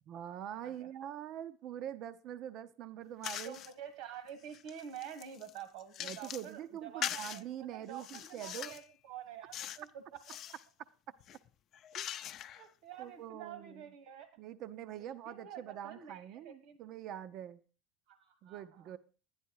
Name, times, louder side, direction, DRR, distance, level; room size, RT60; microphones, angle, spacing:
voice 1, 0.1-3.6 6.0-8.7 11.9-12.1 13.0-13.8 14.4-17.6 18.4-19.0, right 10 dB, 55° right, 13 dB, 0.6 m, -44 dB
sound 1, 3.2-3.7 4.3-6.5 7.0-7.4 7.9-8.9 9.5-9.9 10.2-10.6 11.2-12.7, left 10 dB, 50° left, 0.6 m, -42 dB
voice 2, 3.4-7.4 7.7-10.4 12.5-14.3 15.0-16.8 18.1-19.0, right 9 dB, 80° right, 11 dB, 1.4 m, -48 dB
11.5 x 10.5 x 4.7 m, 0.36 s
supercardioid pair, 120°, 0 cm